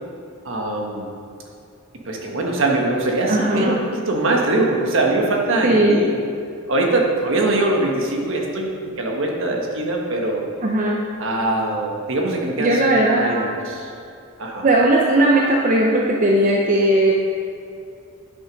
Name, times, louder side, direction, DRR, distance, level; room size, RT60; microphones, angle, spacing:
voice 1, 0.4-1.1 2.0-6.1 6.7-10.5 11.2-13.9 14.4-14.7, right 2 dB, 60° right, 0 dB, 1.3 m, -22 dB
voice 2, 3.3-3.8 5.6-6.0 10.6-11.0 12.6-13.6 14.6-17.1, right 1 dB, 35° right, -2 dB, 0.7 m, -17 dB
9.7 x 6.1 x 5.2 m, 2.5 s
head